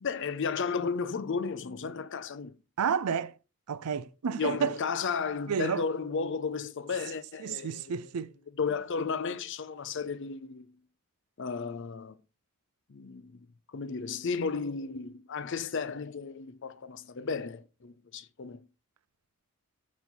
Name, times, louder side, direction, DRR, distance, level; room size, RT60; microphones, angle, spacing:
voice 1, 0.0-2.5 4.4-8.0 8.6-10.7 11.4-12.2 12.9-18.7, left 5 dB, 55° left, 0.5 m, -34 dB
voice 2, 2.8-3.4 3.7-4.8 5.5-5.8 7.4-8.3, right 6 dB, 90° right, 0.5 m, -30 dB
6.8 x 4.2 x 4.4 m
head